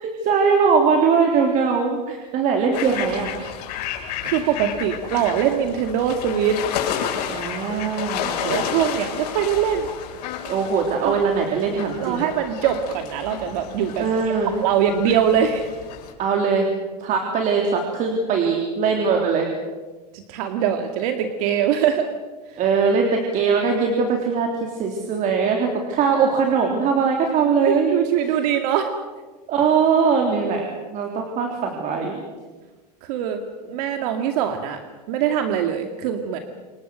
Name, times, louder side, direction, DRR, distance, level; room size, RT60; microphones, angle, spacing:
voice 1, 0.0-3.4 7.3-8.6 10.5-12.2 14.0-14.5 16.2-16.7 17.0-19.5 22.6-28.0 29.5-32.2, right 5 dB, 35° right, 2 dB, 3.5 m, -21 dB
sound 1, 2.7-16.1, left 9 dB, 65° left, 7.3 m, -31 dB
voice 2, 4.2-6.6 8.4-9.9 11.0-11.2 12.0-14.1 14.6-15.7 20.1-22.1 22.5-22.6 27.6-28.9 33.0-33.4 33.6-34.8 35.1-36.4, right 9 dB, 60° right, 5 dB, 2.3 m, -22 dB
28.0 x 22.5 x 6.4 m, 1.3 s
supercardioid pair, 130°, 21 cm